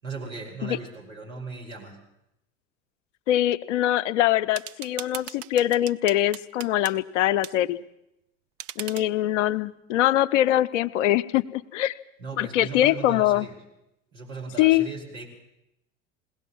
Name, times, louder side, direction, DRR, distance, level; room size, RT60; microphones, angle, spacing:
voice 1, 0.0-2.0 12.2-13.6 14.1-15.3, right 4 dB, 75° right, 0 dB, 5.5 m, -37 dB
voice 2, 3.3-7.8 8.8-11.9 12.4-13.5 14.6-14.9, left 13 dB, 65° left, 13 dB, 0.8 m, -23 dB
sound 1, 4.6-7.0 7.4-7.5 8.6-9.1, right 12 dB, 45° right, 0.7 m, -38 dB
21.0 x 17.5 x 7.2 m, 0.85 s
figure-of-eight pair, 75°, 40 cm